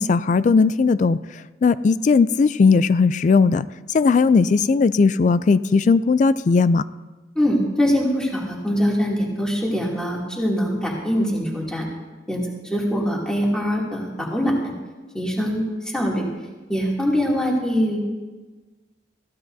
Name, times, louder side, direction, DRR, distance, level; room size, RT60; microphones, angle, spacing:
voice 1, 0.0-6.8, left 4 dB, 45° left, 15 dB, 0.3 m, -18 dB
voice 2, 7.3-11.9 12.3-14.7 15.1-16.3 16.7-18.0, equal, 5° left, -4 dB, 2.6 m, -23 dB
21.0 x 15.5 x 2.7 m, 1.3 s
head